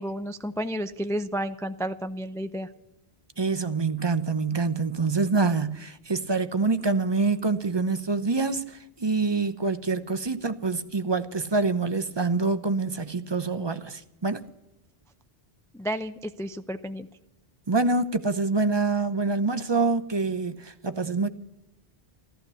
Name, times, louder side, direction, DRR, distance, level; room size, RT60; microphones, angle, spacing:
voice 1, 0.0-2.7 15.7-17.1, equal, 5° left, 0.4 m, -31 dB
voice 2, 3.4-14.4 17.7-21.3, right 3 dB, 30° right, 0.8 m, -26 dB
14.5 x 13.5 x 6.9 m
omnidirectional pair, 1.0 m